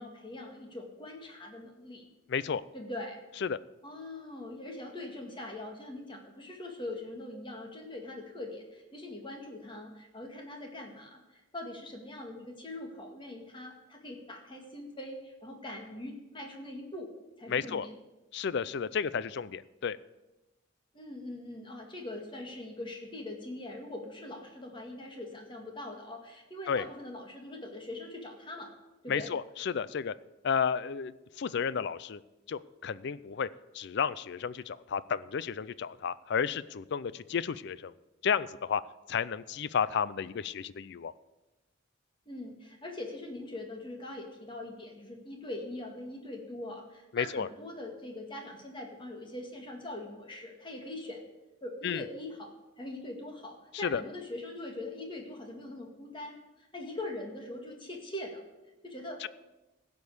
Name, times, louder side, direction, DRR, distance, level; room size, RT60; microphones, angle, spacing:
voice 1, 0.0-2.1 2.7-3.2 3.8-17.1 17.4-17.9 20.9-28.7 29.0-29.3 42.3-51.2 51.6-58.4 58.8-59.3, left 1 dB, 25° left, 2 dB, 2.0 m, -42 dB
voice 2, 2.3-2.6 3.4-3.6 17.5-17.9 18.3-20.0 26.7-26.8 29.1-30.1 30.4-32.2 32.5-33.5 33.7-37.9 38.2-38.8 39.1-41.1 47.1-47.5 51.8-52.0 53.9-54.0 59.2-59.3, left 6 dB, 60° left, 18 dB, 0.4 m, -32 dB
16.0 x 5.3 x 8.0 m, 1.0 s
head